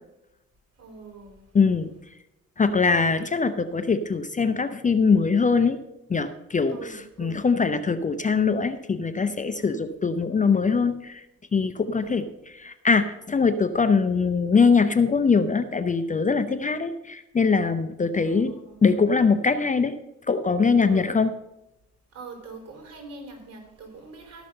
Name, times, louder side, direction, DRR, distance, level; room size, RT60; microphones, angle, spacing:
voice 1, 0.8-1.5 6.7-7.4 9.6-9.9 12.0-12.2 18.2-18.9 20.8-21.2 22.1-24.5, right 4 dB, 55° right, 2 dB, 4.0 m, -43 dB
voice 2, 1.5-1.9 2.6-5.8 6.1-11.3 11.5-12.2 12.6-18.5 18.8-19.9 20.3-21.3, left 5 dB, 25° left, 11 dB, 0.6 m, -22 dB
13.0 x 6.2 x 6.5 m, 0.91 s
cardioid pair, 90°, 30 cm